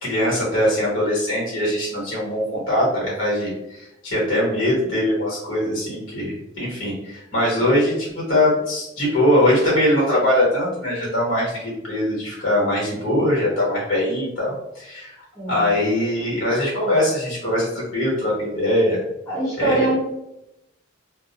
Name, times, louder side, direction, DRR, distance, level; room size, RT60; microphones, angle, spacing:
voice 1, 0.0-15.1 15.5-19.0 19.6-19.9, left 1 dB, 70° left, -5 dB, 1.2 m, -21 dB
voice 2, 15.3-15.7 19.3-20.0, right 2 dB, 15° left, -11 dB, 1.1 m, -23 dB
2.2 x 2.1 x 2.8 m, 0.87 s
head